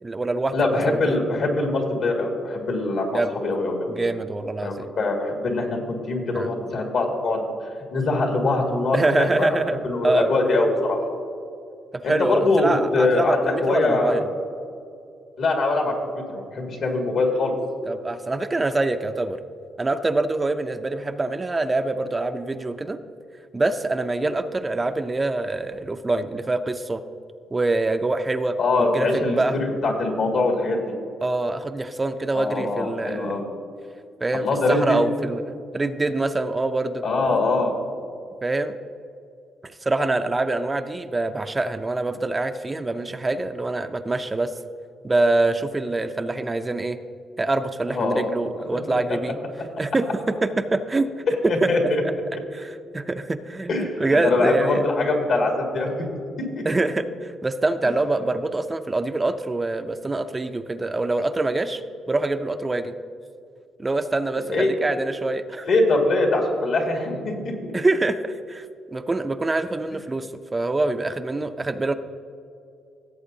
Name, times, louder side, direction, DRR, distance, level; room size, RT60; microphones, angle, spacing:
voice 1, 0.0-0.5 0.9-1.2 3.1-3.3 3.9-4.9 6.3-6.5 8.9-9.8 10.0-10.3 11.9-14.2 17.9-19.4 19.8-23.0 23.5-27.0 27.5-28.6 28.9-29.6 31.2-33.4 34.2-37.0 38.4-38.8 39.8-44.5 45.0-47.0 47.4-49.3 49.8-51.1 51.6-51.7 52.5-54.9 56.7-61.8 62.1-62.9 63.8-65.7 67.7-68.7 68.9-70.3 70.5-71.9, right 2 dB, 20° right, 8 dB, 0.4 m, -25 dB
voice 2, 0.5-3.9 4.6-7.4 7.9-9.6 9.8-11.1 12.0-14.2 15.4-17.6 24.2-24.3 28.6-30.8 32.3-33.5 34.3-35.0 37.0-37.7 47.9-48.3 48.7-49.0 51.3-52.0 53.7-56.1 56.5-56.6 64.5-64.8 65.7-67.7, left 2 dB, 65° left, 1 dB, 2.0 m, -23 dB
16.5 x 7.9 x 2.7 m, 2.5 s
cardioid pair, 90°, 0 cm